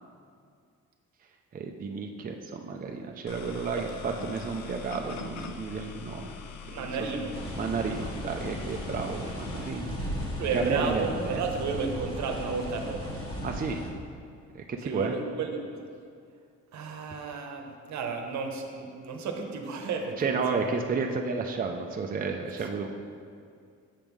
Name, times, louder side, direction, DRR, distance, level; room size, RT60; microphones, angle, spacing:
voice 1, 1.5-6.4 6.7-7.1 7.6-10.0 10.5-11.4 13.4-13.8 14.5-15.2 20.2-22.9, right 4 dB, 30° right, 2 dB, 0.5 m, -32 dB
sound 1, 3.3-9.7, left 6 dB, 70° left, 0.6 m, -43 dB
voice 2, 6.7-7.3 10.4-13.1 14.7-15.6 16.7-20.8 22.6-22.7, right 4 dB, 65° right, 3 dB, 0.9 m, -33 dB
sound 2, 7.3-13.9, equal, 50° left, 1.2 m, -36 dB
7.5 x 3.5 x 6.0 m, 2.3 s
cardioid pair, 90°, 30 cm